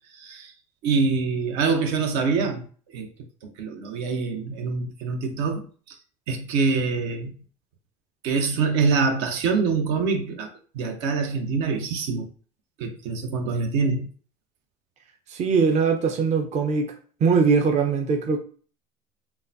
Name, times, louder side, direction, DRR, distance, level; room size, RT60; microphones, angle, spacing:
voice 1, 0.1-0.5 0.8-3.1 3.4-6.0 6.3-7.3 8.2-10.5 10.7-12.3 12.8-14.1, right 4 dB, 70° right, 0.9 m, -25 dB
voice 2, 15.3-16.9 17.2-18.4, right 5 dB, 40° right, 0.7 m, -21 dB
3.8 x 2.2 x 2.7 m
hypercardioid pair, 85°, 18 cm